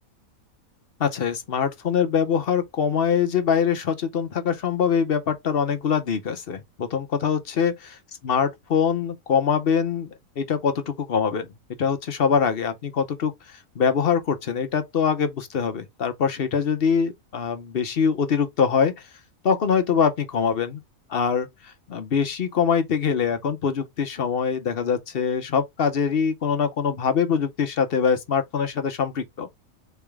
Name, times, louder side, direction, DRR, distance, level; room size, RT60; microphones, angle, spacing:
voice 1, 1.0-7.7 8.2-10.1 10.4-11.5 11.8-19.1 19.4-20.8 21.1-29.5, left 6 dB, 50° left, 0.8 m, -23 dB
4.1 x 3.4 x 3.4 m
omnidirectional pair, 1.5 m